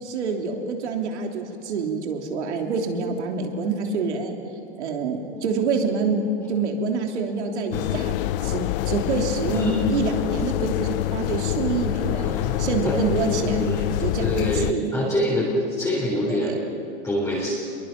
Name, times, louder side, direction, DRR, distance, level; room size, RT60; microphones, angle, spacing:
voice 1, 0.0-4.4 4.8-13.7 14.0-15.1 16.1-16.6, right 4 dB, 90° right, 2 dB, 3.3 m, -27 dB
sound 1, 7.7-14.7, left 14 dB, 55° left, 0.6 m, -26 dB
voice 2, 9.5-9.8 12.2-12.9 13.4-13.9 14.2-16.6 17.0-17.6, left 1 dB, 10° left, -5 dB, 4.0 m, -26 dB
27.0 x 22.5 x 6.0 m, 2.6 s
supercardioid pair, 145°, 33 cm